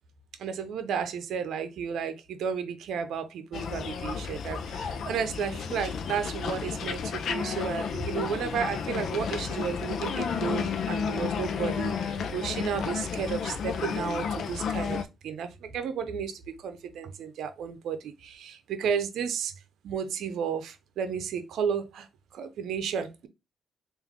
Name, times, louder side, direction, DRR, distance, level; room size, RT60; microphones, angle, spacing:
voice 1, 0.4-19.5 19.8-22.1 22.3-23.3, right 7 dB, 75° right, 0.7 m, -33 dB
sound 1, 3.5-15.0, left 6 dB, 65° left, 0.6 m, -32 dB
3.5 x 2.6 x 3.6 m
cardioid pair, 90°, 0 cm